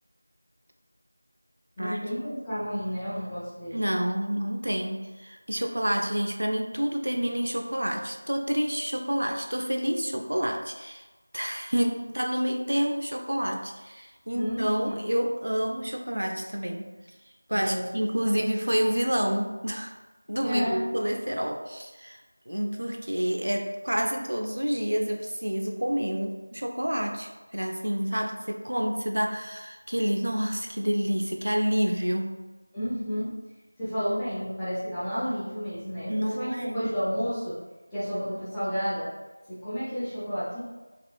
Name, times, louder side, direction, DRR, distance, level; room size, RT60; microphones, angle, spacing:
voice 1, 1.8-3.8 14.3-14.7 17.5-17.8 18.2-18.4 20.4-20.7 32.7-33.3 33.8-37.6 37.9-39.1 39.5-40.6, equal, 5° left, -15 dB, 0.3 m, -31 dB
voice 2, 3.7-11.0 11.3-16.9 17.5-20.0 20.3-32.4 36.1-36.8, equal, 90° right, 3 dB, 0.4 m, -28 dB
4.2 x 2.3 x 2.4 m, 1.2 s
figure-of-eight pair, 180°, 0 cm